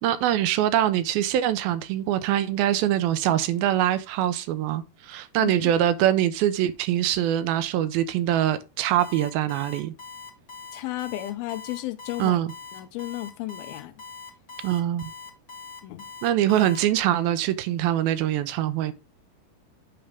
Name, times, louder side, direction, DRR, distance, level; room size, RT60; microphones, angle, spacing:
voice 1, 0.0-9.9 12.2-12.5 14.6-15.0 16.2-18.9, right 12 dB, 80° right, 2.4 m, -23 dB
voice 2, 5.4-5.7 10.7-12.4 12.7-13.9 15.8-16.0, left 16 dB, 80° left, 2.4 m, -33 dB
Alarm, 9.0-16.8, left 4 dB, 50° left, 0.8 m, -42 dB
8.8 x 5.1 x 3.4 m
omnidirectional pair, 4.4 m